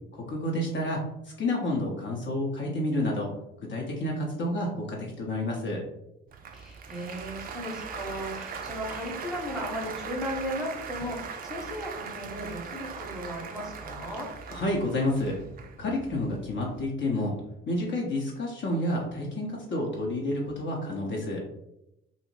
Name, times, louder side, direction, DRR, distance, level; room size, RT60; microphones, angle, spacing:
voice 1, 0.1-1.0 1.4-3.3 3.7-5.8 14.5-15.4 15.8-17.3 17.7-21.4, left 1 dB, 40° left, -2 dB, 0.7 m, -29 dB
Applause, 6.3-16.9, right 6 dB, 30° right, 0.4 m, -40 dB
voice 2, 6.5-14.3, equal, ahead, -2 dB, 0.9 m, -36 dB
2.6 x 2.0 x 3.1 m, 0.86 s
figure-of-eight pair, 50°, 29 cm